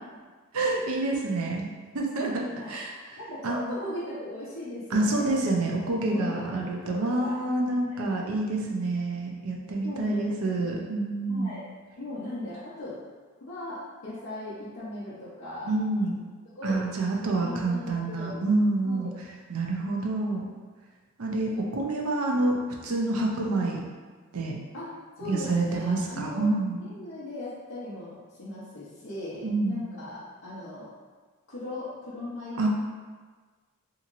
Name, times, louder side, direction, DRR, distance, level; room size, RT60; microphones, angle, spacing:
voice 1, 0.5-1.7 1.9-3.6 4.9-11.5 15.7-16.2 16.6-19.1 19.5-20.4 21.2-23.9 24.3-24.5 25.2-26.8 29.4-29.8 32.6-32.7, right 2 dB, 70° right, 0 dB, 0.5 m, -27 dB
voice 2, 2.1-2.7 3.2-5.4 6.1-7.4 7.9-8.0 9.8-10.8 11.3-11.6 12.0-13.0 13.4-15.7 16.5-18.5 18.8-19.1 19.8-19.9 24.7-26.5 26.8-30.9 31.5-32.7, left 1 dB, 65° left, -11 dB, 0.7 m, -38 dB
2.8 x 2.8 x 2.5 m, 1.4 s
head